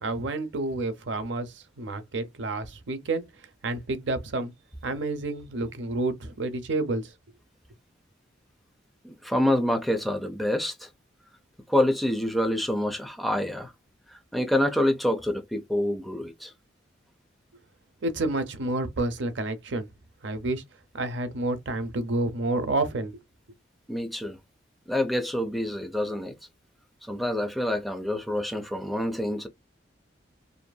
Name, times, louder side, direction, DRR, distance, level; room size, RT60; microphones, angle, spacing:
voice 1, 0.0-3.2 3.6-4.5 4.8-7.1 18.0-19.9 20.2-20.6 20.9-23.2, right 2 dB, 70° right, 0.6 m, -29 dB
voice 2, 9.0-10.9 11.7-13.7 14.3-16.5 23.9-24.4 24.9-26.3 27.1-29.5, left 1 dB, ahead, 0.4 m, -27 dB
2.6 x 2.5 x 2.2 m
head